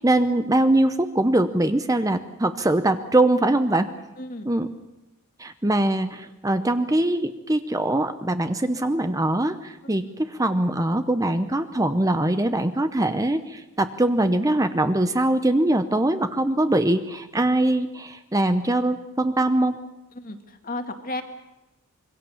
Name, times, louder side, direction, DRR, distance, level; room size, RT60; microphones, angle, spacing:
voice 1, 0.0-3.9 4.5-4.7 5.4-19.8, right 1 dB, 15° right, 9 dB, 0.8 m, -22 dB
voice 2, 4.2-4.5 20.2-21.2, left 2 dB, 40° left, 6 dB, 2.2 m, -33 dB
26.0 x 23.0 x 7.2 m, 0.97 s
head